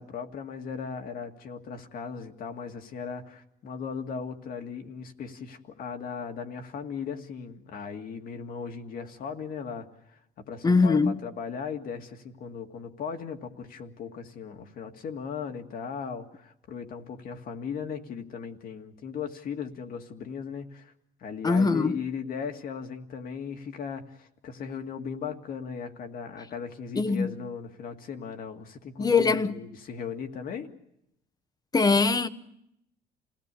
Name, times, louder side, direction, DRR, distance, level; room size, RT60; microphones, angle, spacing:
voice 1, 0.0-20.9 21.2-30.7, left 6 dB, 60° left, 2.1 m, -37 dB
voice 2, 10.6-11.2 21.4-22.0 26.9-27.3 29.0-29.5 31.7-32.3, left 4 dB, 25° left, 1.0 m, -22 dB
27.5 x 17.5 x 8.4 m
cardioid pair, 110°, 17 cm